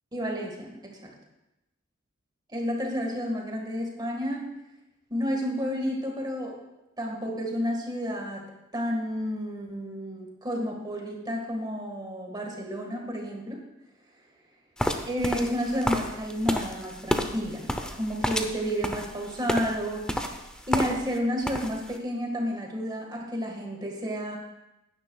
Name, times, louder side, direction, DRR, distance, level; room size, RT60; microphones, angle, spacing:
voice 1, 0.1-1.1 2.5-4.5 5.1-6.6 7.0-8.4 8.7-13.6 15.1-20.2 20.7-24.4, equal, 20° right, 1 dB, 1.7 m, -31 dB
sound 1, 14.8-21.2 21.4-21.9, equal, 5° left, 0.7 m, -30 dB
16.0 x 9.9 x 2.3 m, 0.94 s
head